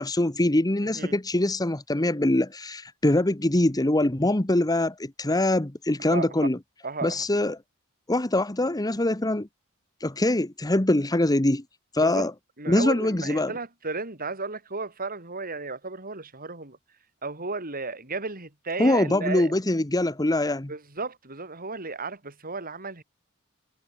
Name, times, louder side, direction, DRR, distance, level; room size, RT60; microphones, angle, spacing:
voice 1, 0.0-6.6 7.0-7.6 8.1-9.5 10.0-11.6 11.9-12.3 12.7-13.5 18.8-20.7, left 1 dB, 20° left, 1.2 m, -23 dB
voice 2, 0.8-1.1 6.0-6.5 6.8-7.2 12.0-12.3 12.6-16.8 17.2-19.5 20.7-23.0, right 3 dB, 40° right, 6.2 m, -34 dB
head